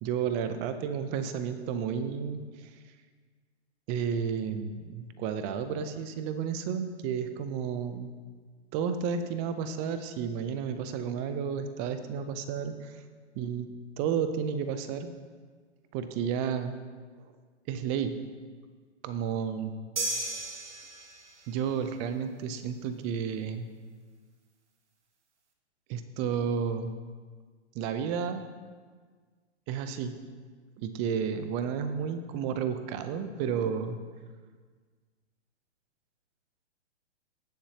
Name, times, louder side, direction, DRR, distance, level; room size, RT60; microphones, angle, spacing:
voice 1, 0.0-2.4 3.9-8.1 8.7-13.0 13.4-13.7 14.0-15.1 15.9-16.8 17.7-18.1 19.0-19.7 21.5-23.7 25.9-26.9 27.7-28.5 29.7-30.1 30.8-34.0, right 7 dB, 20° right, 9 dB, 0.5 m, -32 dB
sound 1, 20.0-21.5, right 2 dB, 75° right, 1.5 m, -34 dB
18.5 x 7.0 x 2.9 m, 1.5 s
hypercardioid pair, 130°, 35 cm